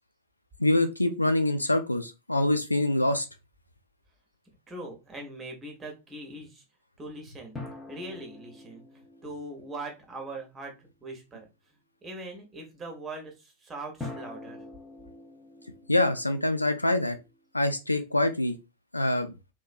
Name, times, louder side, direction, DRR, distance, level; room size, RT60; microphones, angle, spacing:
voice 1, 0.6-3.3 15.9-17.2 17.5-18.5 18.9-19.3, left 1 dB, 85° left, 0.3 m, -25 dB
voice 2, 4.7-6.6 7.0-7.6 7.9-11.5 12.0-14.6, right 2 dB, 15° right, 1.0 m, -41 dB
sound 1, 7.6-10.4 14.0-17.4, left 2 dB, 10° left, 0.8 m, -44 dB
3.0 x 2.2 x 2.5 m
figure-of-eight pair, 90°, 0 cm